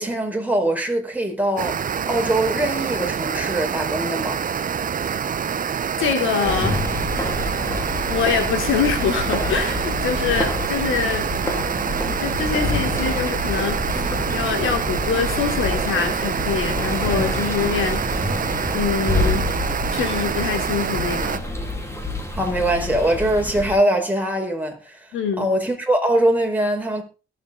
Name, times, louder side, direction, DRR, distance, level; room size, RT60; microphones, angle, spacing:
voice 1, 0.0-1.8 2.1-4.4 22.3-25.1 25.4-27.0, right 1 dB, 10° right, 4.9 m, -22 dB
sound 1, 1.6-21.4, right 7 dB, 45° right, 0.8 m, -26 dB
voice 2, 6.0-6.8 8.1-11.3 12.2-18.0 18.7-19.5 19.9-21.4 25.1-25.5, left 6 dB, 90° left, 3.3 m, -24 dB
sound 2, 6.4-23.8, left 2 dB, 15° left, 3.8 m, -27 dB
21.5 x 7.9 x 3.9 m
cardioid pair, 85°, 20 cm